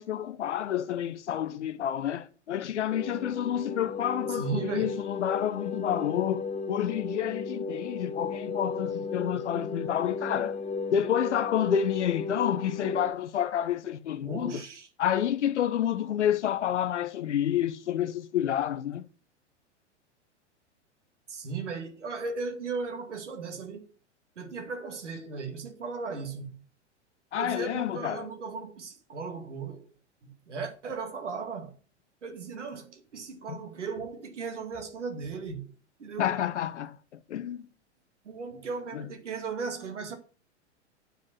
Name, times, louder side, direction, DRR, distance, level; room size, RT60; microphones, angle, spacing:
voice 1, 0.0-10.6 10.9-14.6 15.0-19.0 27.3-28.3 33.5-33.6 36.2-37.0 37.3-37.7 38.9-39.0, left 10 dB, 75° left, 0.8 m, -29 dB
sound 1, 2.9-13.1, left 4 dB, 20° left, 1.1 m, -35 dB
voice 2, 4.3-5.0 14.2-14.9 21.3-23.9 24.4-26.6 27.3-29.9 30.2-31.8 32.2-35.7 36.0-36.4 38.2-40.2, right 5 dB, 80° right, 2.2 m, -36 dB
9.2 x 5.3 x 6.3 m
figure-of-eight pair, 95°, 35 cm